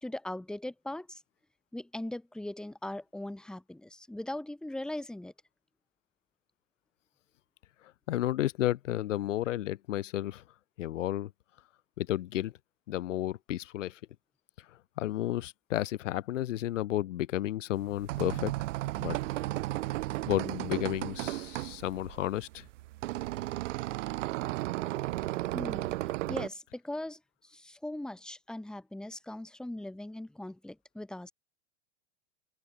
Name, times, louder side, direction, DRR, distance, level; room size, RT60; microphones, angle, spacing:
voice 1, 0.0-1.2 1.7-5.3 25.5-26.0 26.3-31.3, left 1 dB, ahead, 2.6 m, -40 dB
voice 2, 8.1-10.4 10.8-11.3 12.0-12.5 12.9-14.0 14.7-18.5 19.0-19.2 20.2-22.7, left 13 dB, 85° left, 3.0 m, -32 dB
sound 1, 17.8-26.5, right 18 dB, 85° right, 0.6 m, -34 dB
supercardioid pair, 165°, 36 cm